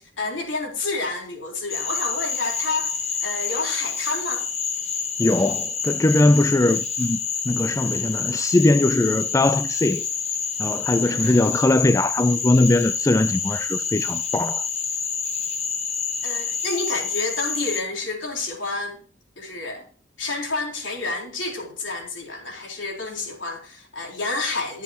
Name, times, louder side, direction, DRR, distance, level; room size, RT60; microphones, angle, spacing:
voice 1, 0.2-4.5 11.1-11.5 16.2-19.0 19.4-19.9 20.2-24.8, left 3 dB, 75° left, 4.0 m, -29 dB
Cricket / Frog, 1.7-17.8, left 6 dB, 35° left, 1.4 m, -28 dB
voice 2, 5.2-7.2 7.5-10.0 10.6-14.7, left 2 dB, 15° left, 0.4 m, -20 dB
20.5 x 7.3 x 2.9 m
head